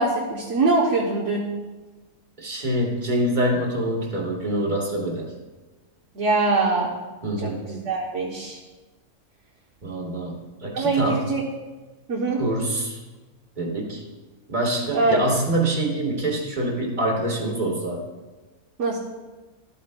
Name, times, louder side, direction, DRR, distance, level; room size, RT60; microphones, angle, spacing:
voice 1, 0.0-1.5 6.1-6.9 7.4-8.6 10.7-11.4 12.1-12.4 14.9-15.2 18.8-19.0, right 3 dB, 55° right, -2 dB, 1.3 m, -23 dB
voice 2, 2.4-5.3 7.2-7.6 9.8-11.2 12.4-13.0 13.6-14.0 14.5-18.0, right 1 dB, 30° right, 0 dB, 1.6 m, -25 dB
13.0 x 8.5 x 2.2 m, 1.2 s
omnidirectional pair, 1.6 m